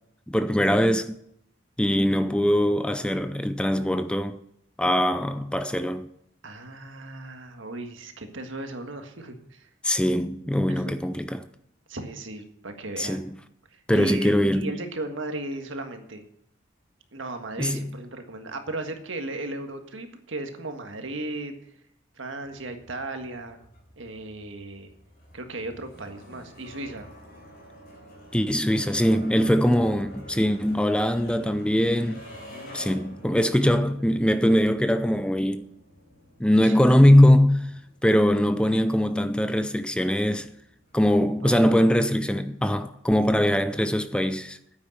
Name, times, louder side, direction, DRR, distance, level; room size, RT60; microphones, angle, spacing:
voice 1, 0.3-1.2 1.8-4.4 4.8-6.1 9.8-11.5 13.0-13.4 13.9-14.7 17.6-17.9 28.3-32.2 32.7-35.7 36.4-37.7 38.0-40.5 40.9-44.6, equal, 5° left, 0.5 m, -22 dB
voice 2, 6.4-9.7 10.7-10.8 11.9-13.2 13.7-16.2 17.1-21.7 22.2-23.7 24.0-24.9 25.3-27.1 32.5-33.1 33.6-34.0 36.6-36.8 41.4-41.9, right 2 dB, 85° right, 1.7 m, -36 dB
sound 1, 22.4-41.7, left 1 dB, 50° left, 4.0 m, -48 dB
9.8 x 8.6 x 7.9 m
head